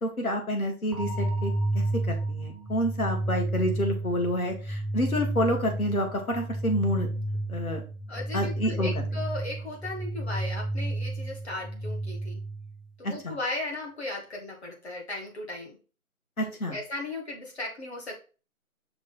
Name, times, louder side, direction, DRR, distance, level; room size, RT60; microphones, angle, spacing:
voice 1, 0.0-7.1 7.5-7.8 8.3-8.9 13.0-13.4 16.4-16.8, equal, 75° left, 2 dB, 1.6 m, -29 dB
sound 1, 0.9-12.9, right 2 dB, ahead, 0.5 m, -31 dB
voice 2, 8.1-12.4 13.0-15.8 16.4-18.2, left 2 dB, 45° left, 0 dB, 1.4 m, -36 dB
5.9 x 2.3 x 3.8 m, 0.35 s
figure-of-eight pair, 175°, 44 cm